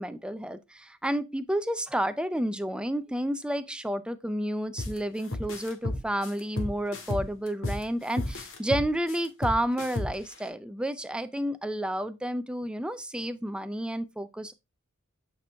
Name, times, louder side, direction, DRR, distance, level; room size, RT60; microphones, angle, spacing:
voice 1, 0.0-14.5, right 1 dB, 5° right, 0.5 m, -31 dB
sound 1, 4.8-5.0 5.3-7.8 8.2-10.3, left 1 dB, 85° left, 1.7 m, -32 dB
8.5 x 4.5 x 3.4 m
head